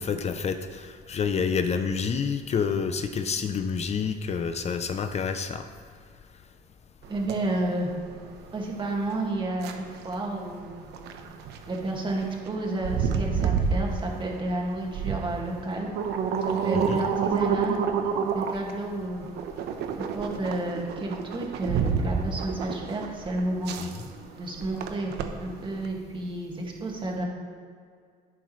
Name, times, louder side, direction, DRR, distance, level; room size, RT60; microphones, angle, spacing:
voice 1, 0.0-5.6 16.7-17.0 23.8-23.9, left 6 dB, 40° left, 8 dB, 0.6 m, -28 dB
sound 1, 7.0-25.9, right 6 dB, 80° right, 0.9 m, -30 dB
voice 2, 7.1-7.9 8.5-10.7 11.7-15.9 16.5-17.8 18.3-19.3 20.0-23.7 24.4-25.1 25.4-27.2, right 2 dB, 30° right, -1 dB, 2.0 m, -31 dB
11.5 x 9.2 x 3.2 m, 2.1 s
cardioid pair, 110°, 17 cm